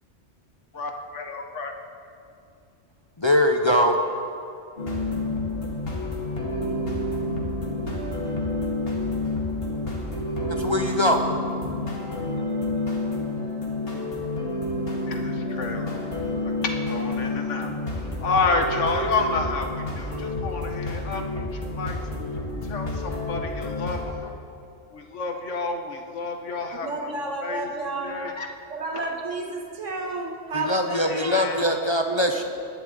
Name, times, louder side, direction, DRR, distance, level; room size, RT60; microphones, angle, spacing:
voice 1, 0.7-1.7 15.0-16.0 16.6-22.0 22.6-24.3 24.9-28.5 28.9-29.1 31.0-31.8, left 3 dB, 75° left, 4 dB, 1.5 m, -30 dB
voice 2, 3.2-4.0 10.5-11.2 30.5-32.4, left 1 dB, 30° left, 3 dB, 0.6 m, -22 dB
sound 1, 4.8-24.1, left 2 dB, 50° left, 2.3 m, -29 dB
voice 3, 26.8-28.2 28.7-31.5 32.1-32.4, right 3 dB, 75° right, 2 dB, 1.8 m, -31 dB
20.0 x 10.5 x 3.9 m, 2.5 s
omnidirectional pair, 1.3 m